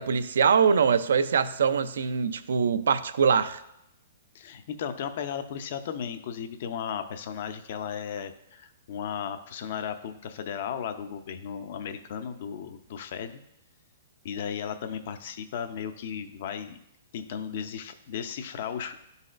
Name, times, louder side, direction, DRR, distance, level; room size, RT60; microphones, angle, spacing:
voice 1, 0.0-3.6, right 6 dB, 80° right, 12 dB, 0.4 m, -23 dB
voice 2, 4.3-13.4 14.2-16.8 17.1-19.0, left 8 dB, 55° left, 9 dB, 0.6 m, -35 dB
11.0 x 4.0 x 2.5 m, 0.81 s
hypercardioid pair, 145°, 0 cm